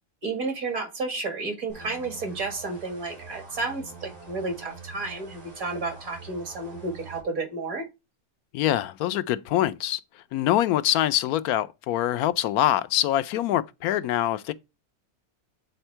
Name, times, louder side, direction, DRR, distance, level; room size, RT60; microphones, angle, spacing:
voice 1, 0.2-7.8, right 3 dB, 70° right, 2.3 m, -32 dB
sound 1, 1.7-7.2, right 4 dB, 85° right, 3.9 m, -45 dB
voice 2, 8.5-10.0 10.3-14.5, left 13 dB, 85° left, 1.1 m, -24 dB
8.0 x 4.4 x 4.4 m
omnidirectional pair, 1.5 m